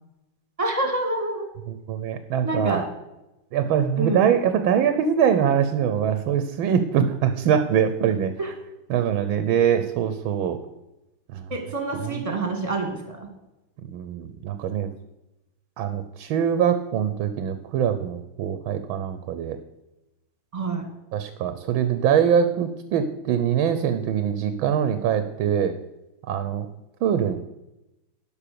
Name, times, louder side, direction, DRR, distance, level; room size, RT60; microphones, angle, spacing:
voice 1, 0.6-1.5 2.4-2.8 4.0-4.3 8.4-8.5 11.5-13.3 20.5-20.8, right 2 dB, 15° right, 4 dB, 1.9 m, -27 dB
voice 2, 1.7-2.8 3.5-8.3 8.9-10.6 11.3-11.5 12.0-12.2 13.8-14.9 15.8-19.6 21.1-25.7 26.3-26.7 27.0-27.4, right 8 dB, 85° right, 10 dB, 1.5 m, -23 dB
12.0 x 5.3 x 6.8 m, 0.95 s
omnidirectional pair, 2.1 m